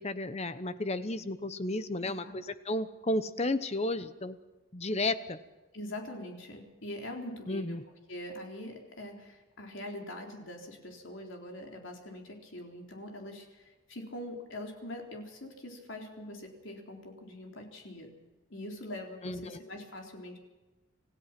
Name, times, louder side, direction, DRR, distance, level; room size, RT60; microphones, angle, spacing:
voice 1, 0.0-4.4 4.7-5.4 7.5-7.8 19.2-19.6, left 2 dB, 30° left, 12 dB, 0.9 m, -33 dB
voice 2, 2.0-2.3 5.7-7.8 8.1-18.1 18.5-20.4, left 1 dB, 60° left, 2 dB, 3.9 m, -43 dB
27.0 x 16.0 x 6.0 m, 1.2 s
head